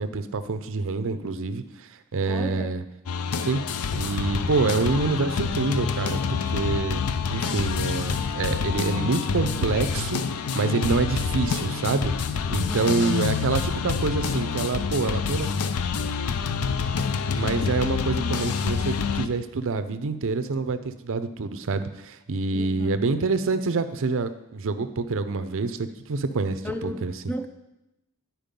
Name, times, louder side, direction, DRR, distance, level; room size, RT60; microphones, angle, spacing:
voice 1, 0.0-2.8 3.5-3.6 3.9-7.0 7.3-10.2 10.5-15.5 17.4-27.3, right 3 dB, 60° right, 10 dB, 0.6 m, -26 dB
voice 2, 2.3-2.8 12.7-13.3 22.5-22.9 26.6-27.5, left 1 dB, 10° left, 6 dB, 0.6 m, -34 dB
sound 1, 3.1-19.3, left 5 dB, 85° left, 0.5 m, -27 dB
10.5 x 4.6 x 5.2 m, 0.93 s
head